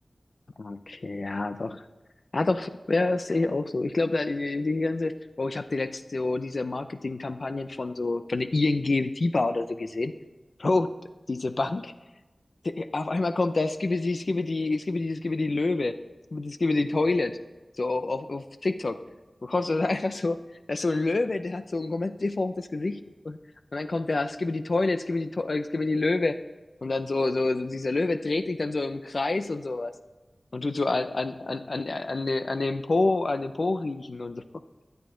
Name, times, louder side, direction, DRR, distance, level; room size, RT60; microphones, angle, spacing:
voice 1, 0.6-1.8 2.3-10.1 10.6-10.9 11.3-11.9 12.6-15.9 16.3-17.4 17.8-19.0 19.4-20.4 20.7-23.4 23.7-26.4 26.8-29.9 30.5-34.4, left 3 dB, 70° left, 10 dB, 0.6 m, -27 dB
16.0 x 10.5 x 3.8 m, 1.1 s
wide cardioid pair, 55°, 0 cm